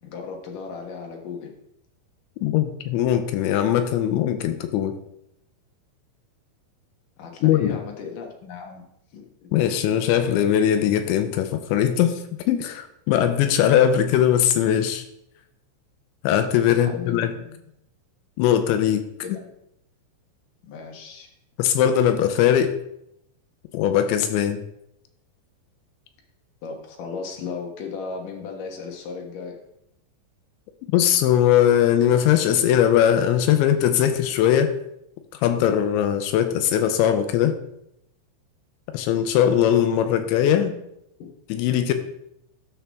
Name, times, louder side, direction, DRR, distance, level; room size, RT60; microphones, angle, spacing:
voice 1, 0.0-1.5 7.2-8.8 9.1-9.5 16.7-17.6 19.2-19.4 20.6-21.3 26.6-29.6 41.2-41.3, left 5 dB, 65° left, 1 dB, 2.2 m, -36 dB
voice 2, 2.4-4.9 7.4-7.8 9.5-12.2 12.5-15.0 16.2-17.3 18.4-19.0 21.6-22.7 23.7-24.6 30.9-34.7 35.4-37.6 38.9-40.7 41.5-41.9, left 10 dB, 80° left, 8 dB, 2.9 m, -20 dB
12.5 x 5.9 x 3.5 m, 0.79 s
omnidirectional pair, 5.4 m